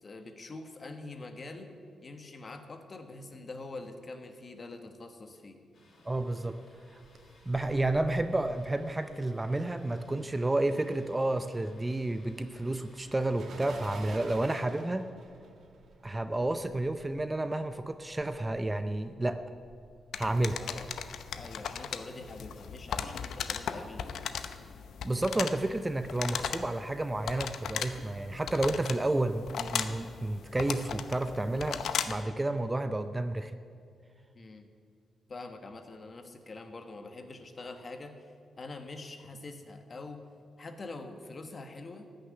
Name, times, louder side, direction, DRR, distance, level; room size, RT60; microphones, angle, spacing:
voice 1, 0.0-1.7 2.0-5.6 20.6-20.9 21.3-24.6 34.3-34.7 35.3-40.2 40.6-42.1, left 3 dB, 40° left, 6 dB, 1.4 m, -45 dB
Thunder, 5.7-14.3, left 2 dB, 60° left, 4.1 m, -61 dB
voice 2, 6.1-6.6 7.5-15.0 16.0-19.4 20.2-20.6 25.0-33.5, right 2 dB, 15° right, 10 dB, 0.6 m, -31 dB
sound 1, 6.8-10.4 10.7-21.4, right 3 dB, 65° right, 1.9 m, -51 dB
sound 2, 20.1-32.3, left 7 dB, 80° left, 0.7 m, -37 dB
14.5 x 6.7 x 9.7 m, 2.2 s
cardioid pair, 95°, 0 cm